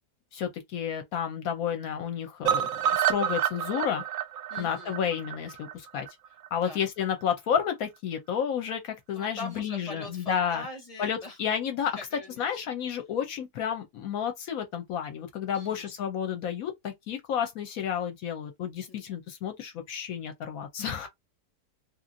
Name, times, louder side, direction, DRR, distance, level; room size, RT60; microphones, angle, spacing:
voice 1, 0.3-4.0 4.6-6.1 6.5-10.7 11.0-12.0 12.4-21.1, left 8 dB, 70° left, 0.9 m, -31 dB
sound 1, 2.4-6.5 6.8-6.9 7.2-7.3 7.6-7.7, right 9 dB, 70° right, 0.9 m, -29 dB
voice 2, 4.5-5.0 6.5-6.8 9.1-11.4 11.9-12.5 15.5-15.9 18.9-19.0, left 2 dB, 35° left, 0.6 m, -42 dB
2.9 x 2.6 x 2.5 m
omnidirectional pair, 1.8 m